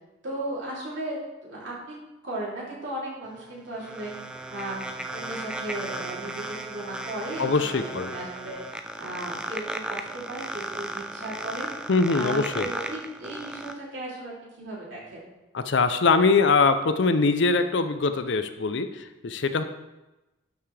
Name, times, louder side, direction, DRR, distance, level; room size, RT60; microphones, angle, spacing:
voice 1, 0.2-1.2 1.4-4.1 4.5-8.7 9.0-11.9 12.1-15.2, right 1 dB, 65° right, -5 dB, 3.1 m, -36 dB
sound 1, 3.3-13.7, right 1 dB, 5° right, 0.3 m, -36 dB
voice 2, 7.4-8.1 11.9-12.7 15.5-19.6, left 4 dB, 60° left, 10 dB, 0.5 m, -22 dB
12.0 x 5.8 x 3.3 m, 1.0 s
head